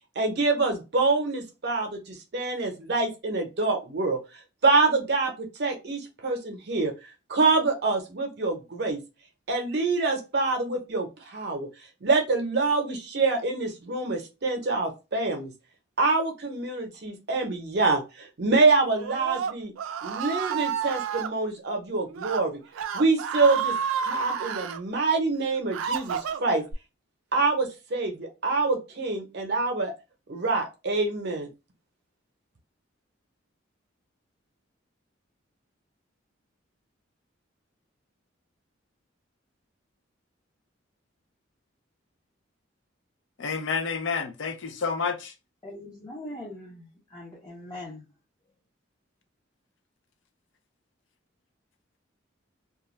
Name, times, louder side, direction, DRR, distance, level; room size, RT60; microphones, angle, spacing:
voice 1, 0.2-4.2 4.6-6.9 7.3-9.0 9.5-11.7 12.0-15.5 16.0-19.7 20.0-22.6 22.9-23.7 24.0-26.6 27.3-29.9 30.3-31.5, right 3 dB, 55° right, 0.7 m, -26 dB
Screaming, 18.9-21.3 22.1-22.4 22.7-24.8 25.3-26.7, right 7 dB, 90° right, 0.3 m, -30 dB
voice 2, 43.4-45.3, left 5 dB, 70° left, 0.5 m, -29 dB
voice 3, 45.6-48.0, left 1 dB, 20° left, 0.5 m, -41 dB
2.3 x 2.1 x 3.1 m
head